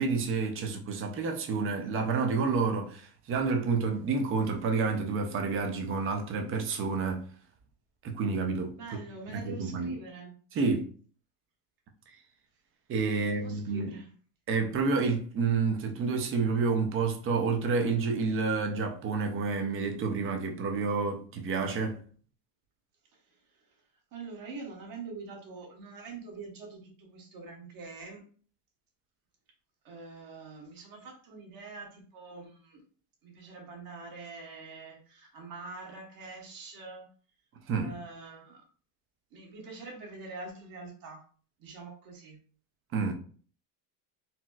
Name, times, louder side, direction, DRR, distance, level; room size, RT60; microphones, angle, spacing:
voice 1, 0.0-3.0 3.3-7.2 8.0-9.0 9.3-10.0 10.5-10.8 12.9-13.9 14.5-22.0 37.7-37.9 42.9-43.1, right 4 dB, 30° right, 0.4 m, -29 dB
voice 2, 8.7-10.3 13.1-14.1 24.1-28.2 29.8-32.8 33.2-37.1 37.8-38.6 39.3-41.2 41.6-42.4, right 3 dB, 45° right, 1.1 m, -45 dB
4.1 x 2.0 x 2.2 m
supercardioid pair, 130°, 50 cm